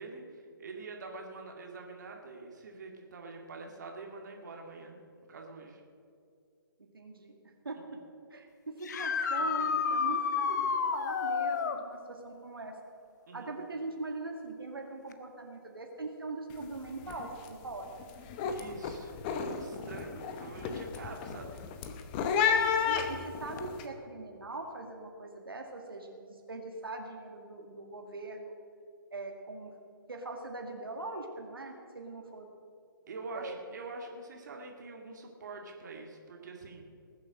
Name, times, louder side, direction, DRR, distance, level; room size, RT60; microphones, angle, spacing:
voice 1, 0.0-5.0 5.3-5.8 13.3-13.5 18.5-21.6 33.1-36.8, right 3 dB, 50° right, 2 dB, 2.0 m, -45 dB
voice 2, 6.9-7.3 7.6-7.8 8.3-10.7 10.9-12.7 13.3-18.0 22.9-28.5 29.1-29.7 30.1-32.5 33.3-33.6, right 3 dB, 75° right, 2 dB, 1.9 m, -41 dB
sound 1, 8.8-11.8 15.1-15.2 17.3-17.4 23.6-23.7, left 6 dB, 50° left, 1.0 m, -30 dB
sound 2, 16.5-16.8 17.0-17.5 17.9-23.8, left 6 dB, 25° left, 1.0 m, -32 dB
19.5 x 7.4 x 6.3 m, 2.4 s
figure-of-eight pair, 135°, 12 cm